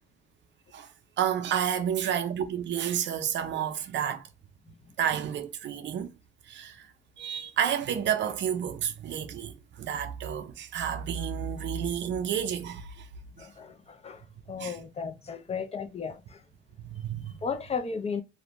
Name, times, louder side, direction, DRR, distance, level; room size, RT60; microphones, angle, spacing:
voice 1, 1.2-4.3 5.0-6.1 6.5-6.9 7.2-13.1 13.4-13.5 14.6-14.8 16.8-17.3, right 9 dB, 65° right, 0.5 m, -30 dB
voice 2, 13.4-14.2 14.5-16.4 17.4-18.2, left 5 dB, 30° left, 0.4 m, -34 dB
2.5 x 2.1 x 2.9 m
cardioid pair, 90°, 20 cm